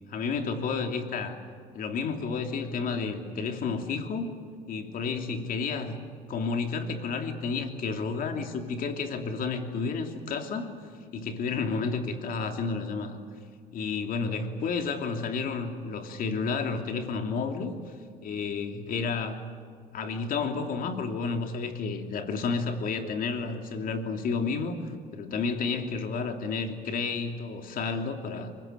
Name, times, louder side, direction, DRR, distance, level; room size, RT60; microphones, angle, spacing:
voice 1, 0.1-1.4 1.7-4.3 4.7-5.9 6.3-10.7 11.1-13.2 13.7-17.8 18.2-19.5 19.9-24.8 25.1-28.5, left 4 dB, 55° left, 5 dB, 2.9 m, -31 dB
24.0 x 21.0 x 9.0 m, 2.2 s
cardioid pair, 110°, 17 cm